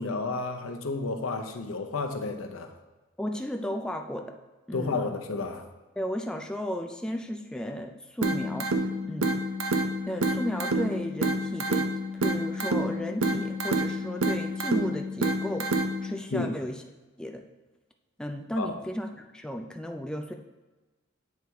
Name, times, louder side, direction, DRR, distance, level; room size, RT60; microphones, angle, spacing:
voice 1, 0.0-2.7 4.7-5.6 16.3-16.5 18.6-18.7, left 3 dB, 85° left, 5 dB, 0.7 m, -31 dB
voice 2, 3.2-4.4 4.7-5.0 6.0-8.7 9.0-9.3 10.1-15.7 16.0-16.8 17.2-17.4 18.2-20.3, equal, 5° left, 4 dB, 0.3 m, -34 dB
sound 1, 8.2-16.2, right 1 dB, 80° right, 0.6 m, -28 dB
8.2 x 4.6 x 3.5 m, 1.2 s
head